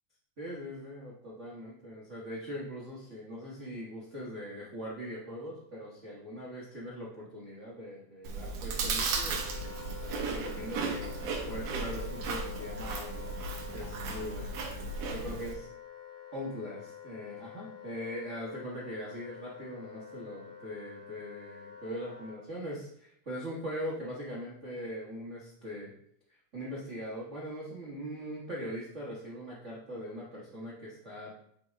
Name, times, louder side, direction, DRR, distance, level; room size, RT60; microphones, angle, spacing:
voice 1, 0.4-10.0 10.3-11.1 11.5-14.6 15.1-15.7 16.3-25.9 26.5-31.3, equal, 85° right, -5 dB, 0.6 m, -41 dB
Chewing mastication, 8.2-15.5, right 4 dB, 65° right, 1.8 m, -35 dB
Wind instrument woodwind instrument, 9.1-22.4, left 9 dB, 90° left, 2.6 m, -48 dB
8.9 x 4.6 x 3.5 m, 0.70 s
omnidirectional pair, 3.8 m